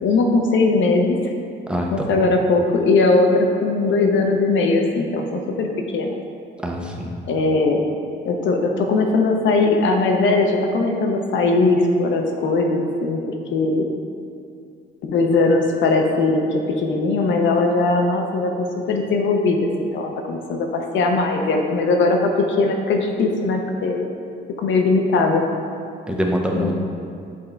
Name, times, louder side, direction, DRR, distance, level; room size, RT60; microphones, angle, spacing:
voice 1, 0.0-1.2 1.9-6.2 7.3-7.8 8.2-13.2 13.5-13.9 15.0-24.1 24.6-25.4 26.5-26.7, left 3 dB, 70° left, 3 dB, 0.8 m, -19 dB
voice 2, 1.7-2.1 6.6-7.2 26.1-26.7, equal, 5° right, 0 dB, 0.8 m, -24 dB
7.0 x 3.7 x 4.4 m, 2.4 s
cardioid pair, 90°, 20 cm